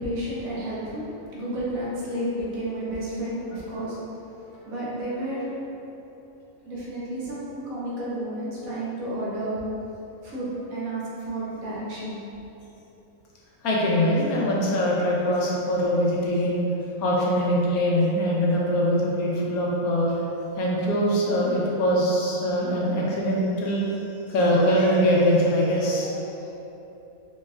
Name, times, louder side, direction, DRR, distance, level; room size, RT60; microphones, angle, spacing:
voice 1, 0.0-5.6 6.6-9.6 10.2-12.2, right 1 dB, 70° right, -7 dB, 1.3 m, -31 dB
voice 2, 13.6-16.6 17.0-20.1 20.6-23.8 24.3-26.6, equal, 80° left, -4 dB, 1.2 m, -23 dB
4.3 x 3.0 x 2.3 m, 2.9 s
omnidirectional pair, 1.5 m